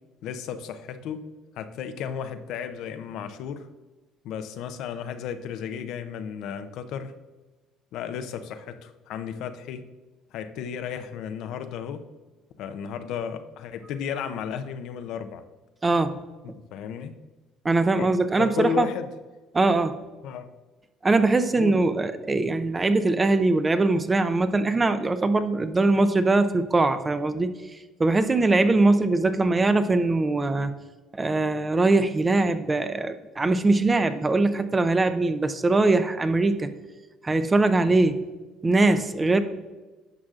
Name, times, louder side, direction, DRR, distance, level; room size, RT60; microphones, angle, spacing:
voice 1, 0.2-1.3 1.5-3.7 4.2-7.1 7.9-9.9 10.3-12.1 12.6-15.4 16.4-17.2 18.0-18.1 18.4-19.1 20.2-20.5 21.5-21.8, left 8 dB, 70° left, 10 dB, 0.5 m, -34 dB
voice 2, 15.8-16.2 17.6-18.9 19.5-20.0 21.0-27.5 28.0-30.7 31.1-36.7 37.2-38.2 38.6-39.4, right 2 dB, 25° right, 11 dB, 0.6 m, -22 dB
10.5 x 6.1 x 2.4 m, 1.2 s
supercardioid pair, 75°, 0 cm